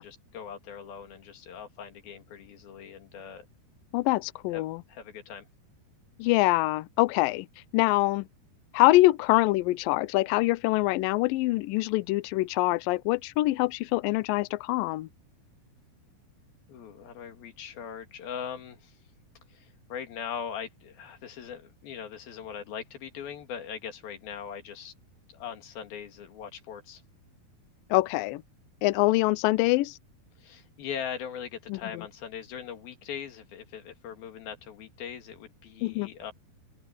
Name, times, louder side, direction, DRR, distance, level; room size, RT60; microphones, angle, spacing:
voice 1, 0.0-3.5 4.5-4.6 4.9-5.4 16.7-19.0 19.5-24.9 25.3-27.0 30.4-36.3, left 8 dB, 65° left, 4.0 m, -40 dB
voice 2, 3.9-4.8 6.2-7.5 7.7-8.3 8.7-15.1 27.9-28.4 28.8-30.0 31.7-32.0 35.8-36.1, left 19 dB, 90° left, 2.0 m, -24 dB
open air
omnidirectional pair, 4.7 m